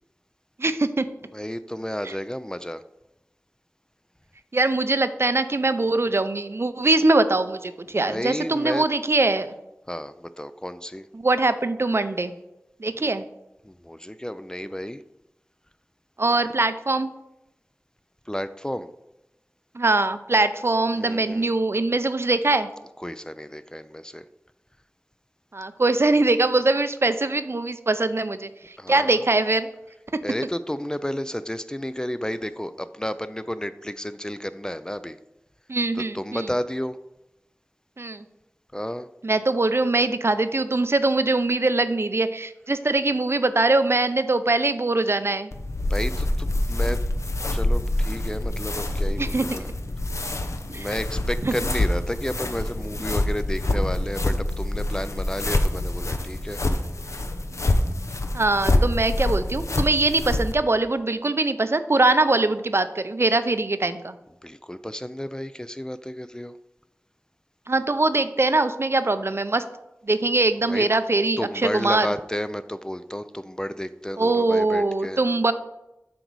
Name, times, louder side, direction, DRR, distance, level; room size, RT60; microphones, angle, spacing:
voice 1, 0.6-1.0 4.5-9.5 11.2-12.3 12.8-13.2 16.2-17.1 19.7-22.7 25.5-28.5 28.9-29.7 35.7-36.5 38.0-38.2 39.2-45.5 49.2-49.4 50.7-50.9 51.4-51.5 58.3-64.1 67.7-69.6 70.1-72.1 74.2-75.5, right 2 dB, 55° right, 11 dB, 0.5 m, -22 dB
voice 2, 1.3-2.8 8.1-8.9 9.9-11.1 13.0-13.1 13.6-15.0 18.3-18.9 20.9-21.5 23.0-24.2 28.8-29.2 30.2-35.2 35.9-37.0 38.7-39.1 45.9-47.0 47.5-49.7 50.7-56.6 64.4-66.6 70.7-70.9 71.4-75.2, equal, 15° left, 12 dB, 0.3 m, -32 dB
sound 1, 45.5-60.5, left 1 dB, 75° left, 0.7 m, -26 dB
7.8 x 5.2 x 4.6 m, 0.93 s
wide cardioid pair, 50°, 5 cm